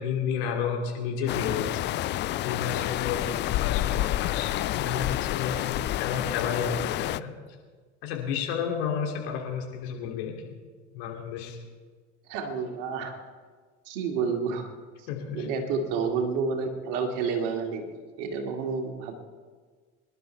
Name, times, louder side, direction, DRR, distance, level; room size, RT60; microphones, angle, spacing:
voice 1, 0.0-1.9 2.4-7.3 8.0-10.4 10.9-11.6 15.1-15.5, left 7 dB, 60° left, 1 dB, 3.0 m, -31 dB
sound 1, 1.3-7.2, left 15 dB, 30° left, 0.4 m, -29 dB
voice 2, 12.3-13.2 13.9-14.7 15.3-17.9 18.2-19.2, right 5 dB, 60° right, 3 dB, 2.3 m, -29 dB
24.5 x 11.5 x 3.4 m, 1.5 s
figure-of-eight pair, 70°, 35 cm